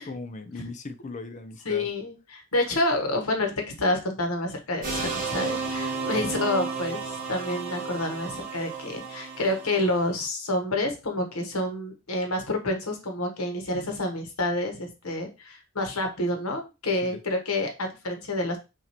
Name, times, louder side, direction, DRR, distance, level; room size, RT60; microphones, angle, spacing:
voice 1, 0.0-1.9 6.1-6.3 17.0-17.2, left 3 dB, 35° left, 0.4 m, -39 dB
voice 2, 1.6-18.6, left 1 dB, 85° left, 1.2 m, -28 dB
sound 1, 4.8-10.2, right 4 dB, 40° right, 1.4 m, -32 dB
5.8 x 2.6 x 2.9 m
head